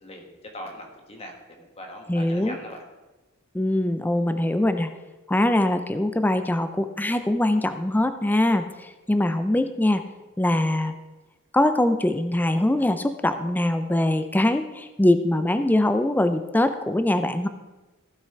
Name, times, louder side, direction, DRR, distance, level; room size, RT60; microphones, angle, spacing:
voice 1, 0.0-2.8, left 1 dB, 30° left, 2 dB, 1.7 m, -40 dB
voice 2, 2.1-2.6 3.5-4.9 5.3-10.0 10.4-10.9 11.5-17.5, left 1 dB, 10° left, 10 dB, 0.4 m, -22 dB
15.0 x 5.8 x 4.5 m, 1.1 s
head